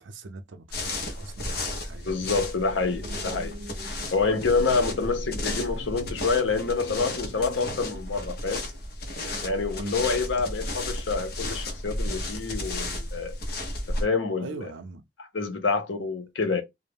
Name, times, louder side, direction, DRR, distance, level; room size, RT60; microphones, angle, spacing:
voice 1, 0.0-2.3 3.0-3.2 4.2-4.3 4.9-5.1 9.8-10.0 14.4-15.0, right 3 dB, 85° right, 0.5 m, -41 dB
sound 1, 0.7-14.0, left 1 dB, 55° left, 0.8 m, -33 dB
voice 2, 2.1-3.5 4.1-8.6 9.4-13.4 13.9-14.7 15.3-16.6, left 4 dB, 90° left, 0.7 m, -27 dB
sound 2, 2.6-8.0, right 2 dB, 30° right, 0.5 m, -45 dB
2.4 x 2.1 x 3.3 m
head